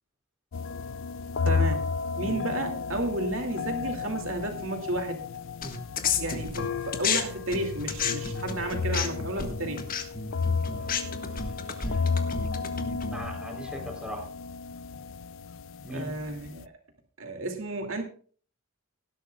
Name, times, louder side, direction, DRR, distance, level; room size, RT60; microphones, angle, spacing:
sound 1, 0.5-16.6, left 5 dB, 60° left, 0.4 m, -33 dB
voice 1, 1.4-1.9 2.2-5.2 6.2-9.9 15.9-16.7 17.2-18.0, right 1 dB, 65° right, 4 dB, 2.5 m, -32 dB
sound 2, 5.6-7.2 7.5-13.3, left 6 dB, 40° left, 1.6 m, -31 dB
voice 2, 10.7-14.3 15.8-16.1, right 1 dB, 5° right, 1 dB, 3.6 m, -41 dB
18.0 x 12.0 x 2.4 m, 0.42 s
head